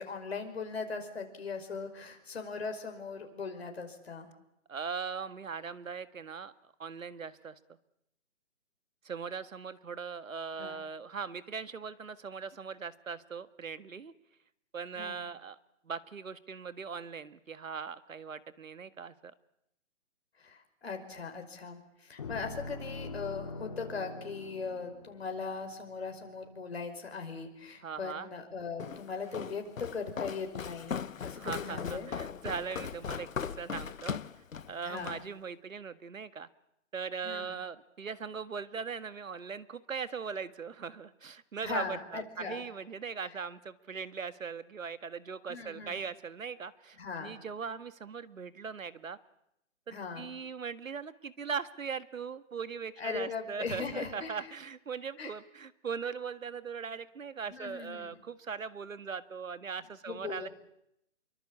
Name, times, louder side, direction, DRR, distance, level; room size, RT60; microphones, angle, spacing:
voice 1, 0.0-4.3 10.6-10.8 14.9-15.2 20.4-32.1 34.8-35.2 37.2-37.6 41.6-42.7 45.5-46.0 47.0-47.4 49.9-50.3 53.0-54.4 55.2-55.3 57.5-58.2 60.1-60.5, left 5 dB, 50° left, 5 dB, 5.4 m, -39 dB
voice 2, 4.7-7.6 9.0-14.1 14.7-15.6 15.8-19.3 27.8-28.3 31.4-34.2 34.7-36.5 36.9-49.2 49.9-60.5, right 6 dB, 80° right, 14 dB, 1.8 m, -40 dB
sound 1, 22.2-26.6, left 3 dB, 25° left, 2.5 m, -44 dB
Walk footsteps, 28.8-35.3, left 7 dB, 90° left, 1.1 m, -39 dB
28.0 x 23.5 x 8.7 m, 0.80 s
hypercardioid pair, 175°, 39 cm